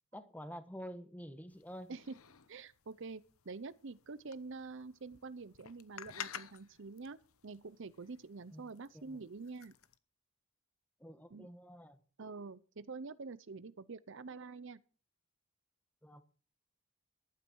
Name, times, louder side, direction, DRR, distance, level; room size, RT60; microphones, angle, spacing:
voice 1, 0.1-1.9 8.5-8.6 8.9-9.2 11.0-12.0 16.0-16.2, equal, 5° left, 1.4 m, -48 dB
sound 1, 1.5-10.0, left 9 dB, 75° left, 1.0 m, -53 dB
voice 2, 2.5-7.2 7.4-9.7 11.3-11.5 12.2-14.8, right 4 dB, 60° right, 0.7 m, -47 dB
15.0 x 11.5 x 4.6 m
head